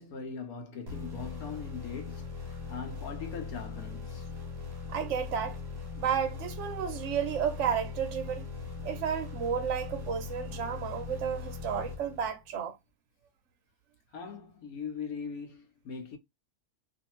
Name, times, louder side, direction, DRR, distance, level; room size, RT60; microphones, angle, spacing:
voice 1, 0.0-4.3 14.1-16.2, left 6 dB, 70° left, 1.1 m, -41 dB
sound 1, 0.9-12.6, left 5 dB, 25° right, 0.5 m, -40 dB
voice 2, 4.9-5.6 6.0-8.4 8.8-12.7, right 8 dB, 65° right, 0.7 m, -32 dB
2.6 x 2.5 x 2.9 m
omnidirectional pair, 1.6 m